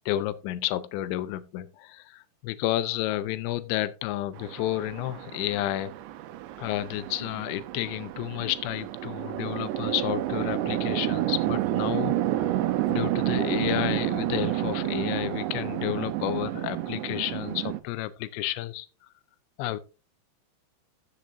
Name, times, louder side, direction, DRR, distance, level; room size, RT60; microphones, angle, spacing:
voice 1, 0.1-5.9 6.6-12.5 12.9-18.9 19.6-19.8, left 15 dB, 90° left, 3.0 m, -31 dB
Chatter / Traffic noise roadway noise / Train, 4.4-17.8, right 14 dB, 85° right, 2.8 m, -30 dB
15.0 x 7.5 x 2.5 m
omnidirectional pair, 5.0 m